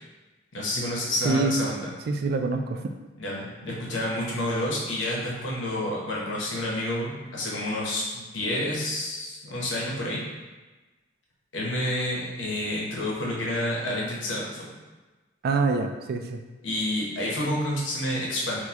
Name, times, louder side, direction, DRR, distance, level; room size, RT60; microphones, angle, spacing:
voice 1, 0.5-1.9 3.2-10.2 11.5-14.7 16.6-18.6, left 1 dB, 85° left, -4 dB, 0.9 m, -29 dB
voice 2, 1.2-1.6 2.1-2.9 15.4-16.4, right 3 dB, 55° right, 5 dB, 0.3 m, -25 dB
4.0 x 2.3 x 2.8 m, 1.2 s
head